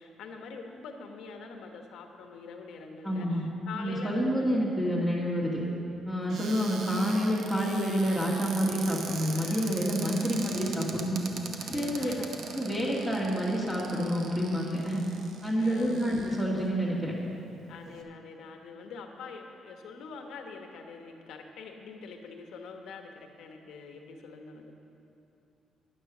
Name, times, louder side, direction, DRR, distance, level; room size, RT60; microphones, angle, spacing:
voice 1, 0.0-4.7 9.3-9.9 11.6-12.3 15.5-16.0 17.7-24.7, left 4 dB, 80° left, 4 dB, 1.1 m, -44 dB
voice 2, 3.0-3.5 3.7-5.6 6.1-11.2 11.7-12.1 12.5-15.0 15.4-17.1, equal, 15° right, -5 dB, 1.9 m, -28 dB
Cupboard open or close, 6.3-16.7 17.3-17.4 17.7-18.0, right 5 dB, 70° right, 0.9 m, -41 dB
10.0 x 9.9 x 6.0 m, 2.8 s
cardioid pair, 90°, 0 cm